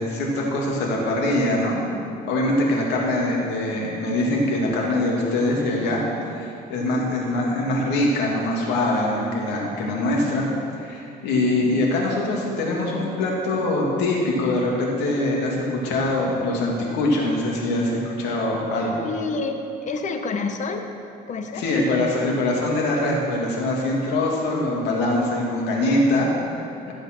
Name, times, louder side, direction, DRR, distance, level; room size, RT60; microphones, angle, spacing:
voice 1, 0.0-1.9 2.2-6.0 6.3-10.4 10.8-19.1 21.5-26.9, left 1 dB, 85° left, -2 dB, 2.9 m, -23 dB
voice 2, 19.0-20.8 21.3-21.6, left 4 dB, 45° left, 5 dB, 1.3 m, -28 dB
14.0 x 8.0 x 6.4 m, 2.6 s
cardioid pair, 110°, 17 cm